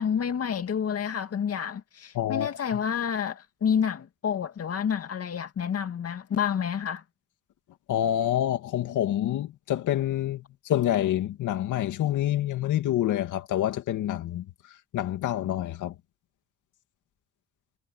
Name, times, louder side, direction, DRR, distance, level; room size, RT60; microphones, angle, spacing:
voice 1, 0.0-7.0, left 7 dB, 50° left, 2.4 m, -29 dB
voice 2, 2.1-2.5 7.9-14.4 14.9-15.9, left 12 dB, 80° left, 2.5 m, -27 dB
cardioid pair, 90°, 30 cm